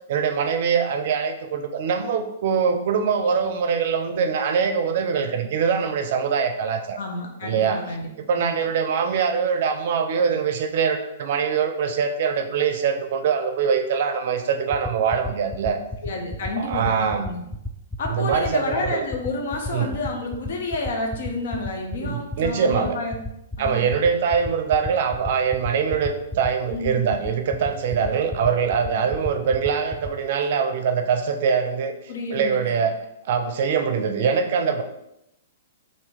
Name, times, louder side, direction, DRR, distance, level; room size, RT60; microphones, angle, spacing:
voice 1, 0.1-7.0 7.4-7.8 8.2-15.8 16.6-17.3 18.1-19.0 19.7-19.9 22.0-23.0 23.6-31.9 32.3-33.0 33.2-34.8, right 6 dB, 55° right, 7 dB, 0.4 m, -23 dB
voice 2, 7.0-8.1 8.3-8.5 16.0-17.4 18.0-23.2 23.6-23.8 26.7-27.0 27.9-28.1 28.4-28.5 29.0-29.1 32.1-32.7, left 2 dB, 60° left, 1 dB, 0.6 m, -30 dB
sound 1, 14.7-30.1, left 3 dB, 5° left, 0.4 m, -31 dB
2.9 x 2.6 x 3.5 m, 0.84 s
hypercardioid pair, 120°, 0 cm